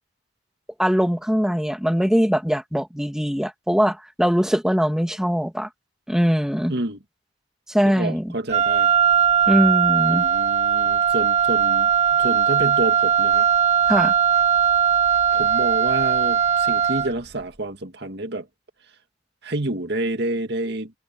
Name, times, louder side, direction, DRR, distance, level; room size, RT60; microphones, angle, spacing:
voice 1, 0.8-5.7 6.1-6.7 7.7-8.3 9.5-10.3 13.9-14.1, equal, 5° right, 2.1 m, -21 dB
voice 2, 7.8-8.9 10.1-13.5 15.3-18.5 19.4-20.9, right 1 dB, 65° right, 2.1 m, -28 dB
Wind instrument woodwind instrument, 8.5-17.2, right 8 dB, 40° right, 1.6 m, -19 dB
head